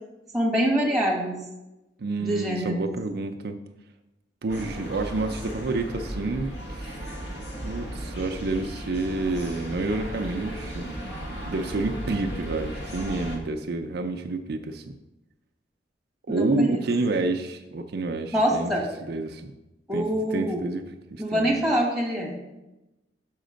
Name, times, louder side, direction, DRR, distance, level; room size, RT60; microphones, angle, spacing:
voice 1, 0.3-1.4 2.2-2.8 16.3-16.8 18.3-18.9 19.9-20.6 21.2-22.4, equal, ahead, -1 dB, 1.5 m, -25 dB
voice 2, 2.0-3.6 4.4-7.0 7.6-10.9 11.5-14.9 16.3-18.7 19.0-19.5 19.9-20.8 21.1-21.5, right 3 dB, 60° right, 5 dB, 0.5 m, -29 dB
sound 1, 4.5-13.4, equal, 65° left, 1.5 m, -35 dB
6.4 x 5.0 x 5.1 m, 0.98 s
head